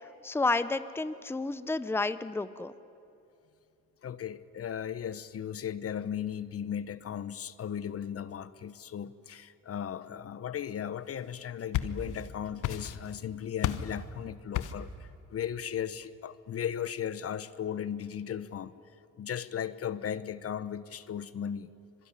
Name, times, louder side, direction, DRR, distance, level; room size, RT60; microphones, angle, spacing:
voice 1, 0.2-2.7, left 3 dB, 10° left, 13 dB, 0.8 m, -30 dB
voice 2, 4.0-18.7 19.2-21.7, left 9 dB, 50° left, 15 dB, 0.9 m, -36 dB
sound 1, 11.3-12.3 12.6-13.2 13.6-14.0 14.5-14.9, left 11 dB, 85° left, 1.2 m, -32 dB
25.5 x 22.0 x 10.0 m, 2.7 s
cardioid pair, 90°, 30 cm